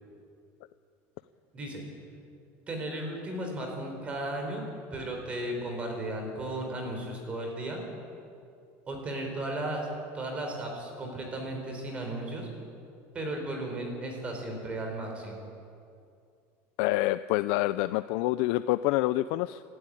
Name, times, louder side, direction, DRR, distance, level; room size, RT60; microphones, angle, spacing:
voice 1, 2.7-7.8 8.9-9.9 10.1-12.5 13.1-15.5, right 1 dB, 20° right, 2 dB, 4.4 m, -35 dB
voice 2, 16.8-19.6, left 17 dB, 60° left, 13 dB, 0.4 m, -27 dB
26.5 x 12.5 x 9.8 m, 2.4 s
cardioid pair, 175°, 7 cm